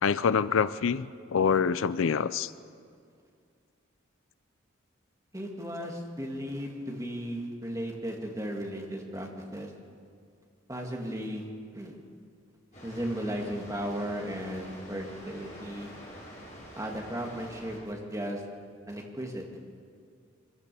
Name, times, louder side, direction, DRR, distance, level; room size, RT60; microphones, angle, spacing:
voice 1, 0.0-2.5, left 6 dB, 75° left, 16 dB, 0.5 m, -26 dB
voice 2, 5.3-9.7 10.7-11.5 11.7-11.9 12.8-16.0 16.8-18.4 18.9-19.5, equal, 15° right, 0 dB, 2.2 m, -35 dB
Water, 12.7-17.8, equal, 35° left, 6.8 m, -47 dB
24.0 x 16.0 x 7.0 m, 2.3 s
head